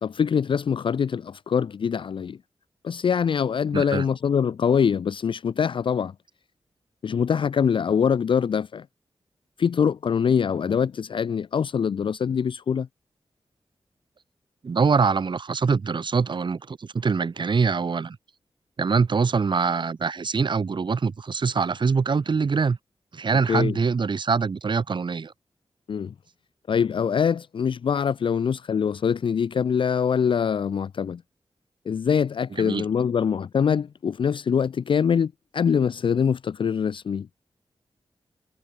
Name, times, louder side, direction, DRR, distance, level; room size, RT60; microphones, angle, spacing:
voice 1, 0.0-2.4 2.8-6.1 7.0-8.9 9.6-12.9 23.5-23.8 25.9-26.1 26.7-31.2 31.9-37.3, left 7 dB, 60° left, 0.4 m, -24 dB
voice 2, 3.7-4.0 14.6-18.2 18.8-22.8 23.1-25.3 32.6-32.9, right 5 dB, 55° right, 1.1 m, -24 dB
wide cardioid pair, 90°, 10 cm